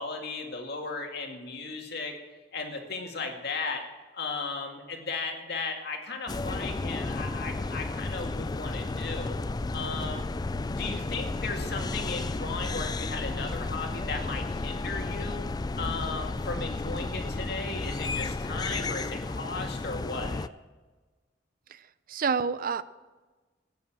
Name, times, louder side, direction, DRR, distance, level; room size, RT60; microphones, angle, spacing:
voice 1, 0.0-2.2 2.5-3.8 4.1-9.4 9.7-10.3 10.7-15.5 15.7-20.5, left 4 dB, 65° left, 2 dB, 2.3 m, -36 dB
sound 1, 6.3-20.5, left 3 dB, 20° left, 0.4 m, -33 dB
voice 2, 22.1-22.8, right 5 dB, 50° right, 15 dB, 0.5 m, -28 dB
17.0 x 9.3 x 7.5 m, 1.3 s
head